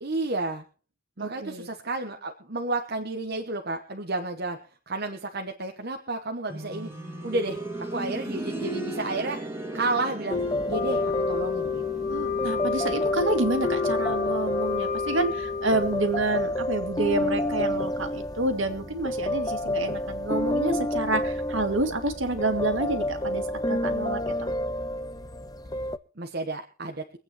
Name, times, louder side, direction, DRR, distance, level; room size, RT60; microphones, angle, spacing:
voice 1, 0.0-0.6 1.2-4.6 4.9-6.9 7.2-7.6 7.9-9.4 9.7-10.4 10.7-12.1 26.2-27.0, right 2 dB, 45° right, 4 dB, 1.1 m, -31 dB
voice 2, 1.2-1.7 12.1-24.5, right 2 dB, 60° right, 6 dB, 2.2 m, -28 dB
sound 1, 6.5-17.3 18.6-18.7, right 2 dB, 10° right, 2.2 m, -38 dB
sound 2, 10.3-26.0, left 1 dB, 20° left, 0.5 m, -30 dB
Wind instrument woodwind instrument, 10.7-16.3, left 5 dB, 40° left, 1.2 m, -30 dB
24.5 x 8.8 x 3.1 m, 0.37 s
head